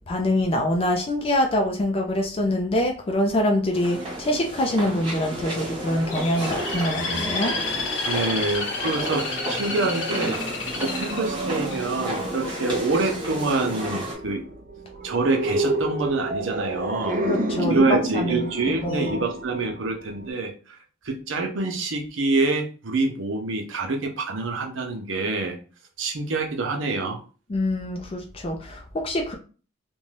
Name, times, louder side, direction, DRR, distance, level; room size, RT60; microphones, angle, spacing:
voice 1, 0.1-7.5 17.2-17.9 18.1-18.5 18.8-19.2 27.5-29.3, left 1 dB, 30° left, 2 dB, 0.4 m, -25 dB
sound 1, 3.7-14.1, right 1 dB, 25° right, 1.2 m, -32 dB
Bird, 6.1-12.2 12.7-13.1, left 3 dB, 90° left, 0.9 m, -30 dB
voice 2, 8.0-10.4 10.8-14.4 15.0-17.2 17.7-20.8 21.0-25.6 26.0-27.2, right 3 dB, 85° right, 3 dB, 0.7 m, -26 dB
sound 2, 10.6-20.3, right 1 dB, 45° right, 0.4 m, -30 dB
2.6 x 2.2 x 3.2 m, 0.37 s
head